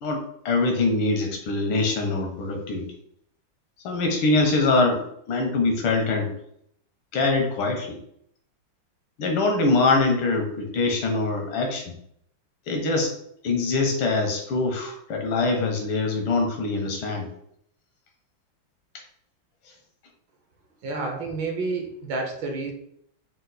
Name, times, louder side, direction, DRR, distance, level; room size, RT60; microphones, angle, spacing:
voice 1, 0.0-2.9 3.8-6.3 7.1-8.0 9.2-11.9 12.7-13.1 13.4-17.3, left 3 dB, 85° left, 3 dB, 1.7 m, -23 dB
voice 2, 20.8-22.7, right 3 dB, 70° right, 3 dB, 1.5 m, -29 dB
5.1 x 2.4 x 3.9 m, 0.70 s
omnidirectional pair, 2.2 m